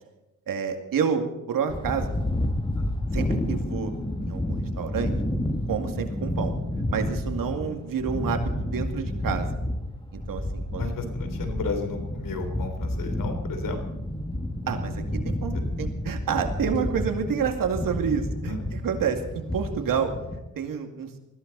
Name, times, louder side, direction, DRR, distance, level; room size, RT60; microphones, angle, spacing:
voice 1, 0.5-2.2 3.1-3.9 4.2-5.1 5.7-6.5 6.9-9.5 10.1-10.9 14.7-20.1 20.6-21.1, right 7 dB, 80° right, 5 dB, 2.4 m, -29 dB
sound 1, 1.7-20.4, left 1 dB, 15° left, 1.8 m, -30 dB
voice 2, 7.4-7.8 10.8-13.8 15.5-15.6 18.4-18.7, left 3 dB, 75° left, 6 dB, 3.5 m, -34 dB
20.5 x 15.0 x 4.1 m, 0.98 s
cardioid pair, 85°, 33 cm